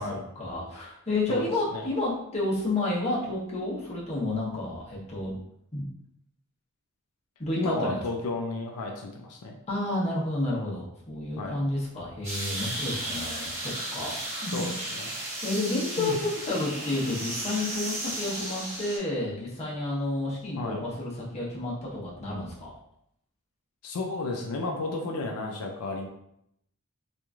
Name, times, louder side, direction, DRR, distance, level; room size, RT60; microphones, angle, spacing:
voice 1, 0.0-5.4 5.7-5.9 7.4-8.0 9.7-14.2 14.4-14.7 15.4-22.7, left 2 dB, 30° left, -6 dB, 0.8 m, -30 dB
voice 2, 7.6-9.5 11.4-11.6 14.5-15.1 16.0-16.2 20.6-20.8 23.8-26.1, left 3 dB, 85° left, 1 dB, 0.4 m, -32 dB
sound 1, 12.2-19.0, right 1 dB, 25° right, 1.1 m, -34 dB
3.0 x 2.4 x 2.3 m, 0.75 s
head